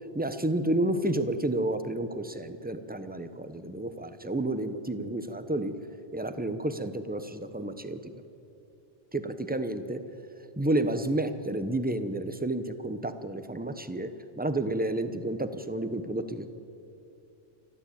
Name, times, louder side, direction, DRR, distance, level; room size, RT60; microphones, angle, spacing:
voice 1, 0.1-5.8 6.1-8.2 9.1-10.0 10.6-16.5, right 1 dB, 10° right, 10 dB, 0.8 m, -30 dB
28.5 x 12.5 x 8.5 m, 2.7 s
omnidirectional pair, 1.2 m